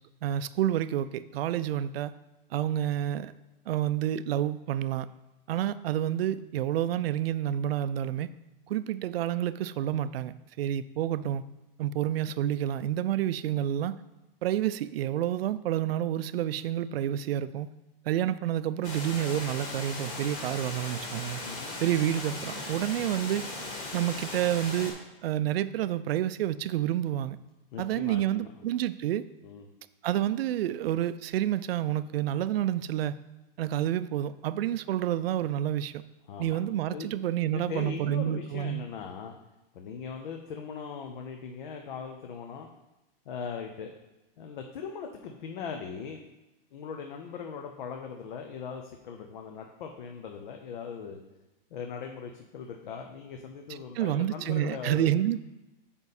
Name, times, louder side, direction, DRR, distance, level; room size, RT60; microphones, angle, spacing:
voice 1, 0.2-2.1 2.5-3.3 3.7-5.1 5.5-8.3 8.7-11.4 11.8-13.9 14.4-17.7 18.1-21.4 21.8-23.4 23.9-25.0 25.2-27.4 27.8-29.2 30.0-33.2 33.6-35.9 36.4-38.8 53.7-55.4, right 11 dB, 80° right, 14 dB, 0.5 m, -29 dB
Water, 18.8-24.9, left 2 dB, 40° left, 1.9 m, -38 dB
voice 2, 21.4-21.8 27.7-28.5 29.4-29.7 36.3-36.6 36.9-37.1 37.5-39.3 39.7-42.7 43.3-43.9 44.4-46.2 46.7-51.2 51.7-55.1, left 6 dB, 55° left, 3 dB, 0.8 m, -40 dB
7.0 x 5.3 x 4.2 m, 1.0 s
supercardioid pair, 165°, 29 cm